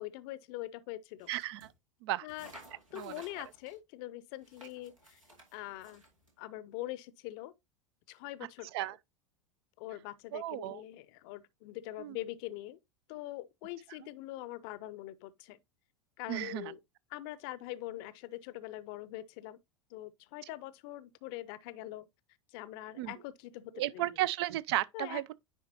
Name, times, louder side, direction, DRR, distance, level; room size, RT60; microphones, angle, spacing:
voice 1, 0.0-1.3 2.2-2.5 2.9-5.2 5.5-6.0 6.4-7.5 8.1-8.7 9.8-12.8 13.1-15.6 16.2-16.8 17.1-19.6 19.9-22.1 22.5-24.0 24.9-25.2, left 16 dB, 50° left, 0.6 m, -43 dB
sound 1, 1.2-1.7 2.3-3.8 4.4-6.3, right 1 dB, 90° right, 2.2 m, -56 dB
voice 2, 1.3-1.7 2.0-2.3 2.9-3.2 8.7-9.0 10.3-10.8 12.0-12.2 16.3-16.7 23.0-23.1 23.7-25.3, right 15 dB, 55° right, 0.5 m, -34 dB
9.8 x 4.6 x 2.8 m
figure-of-eight pair, 85°, 17 cm